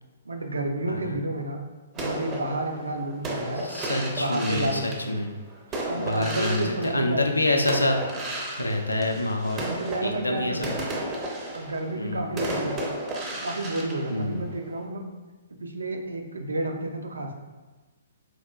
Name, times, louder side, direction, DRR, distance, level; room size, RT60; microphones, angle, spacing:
voice 1, 0.3-1.6 1.9-3.6 4.1-5.2 5.8-7.2 9.1-9.2 9.6-10.7 11.5-12.8 13.3-15.1 15.6-17.4, right 2 dB, 70° right, 4 dB, 0.4 m, -31 dB
voice 2, 0.9-1.2 3.6-5.3 6.0-8.0 8.6-9.7 10.0-10.8 11.9-12.4 14.1-14.4, left 2 dB, 80° left, 3 dB, 0.4 m, -27 dB
sound 1, 1.9-7.3 7.7-14.8, right 1 dB, 20° right, 0.5 m, -34 dB
4.0 x 2.4 x 2.2 m, 1.2 s
figure-of-eight pair, 120°, 0 cm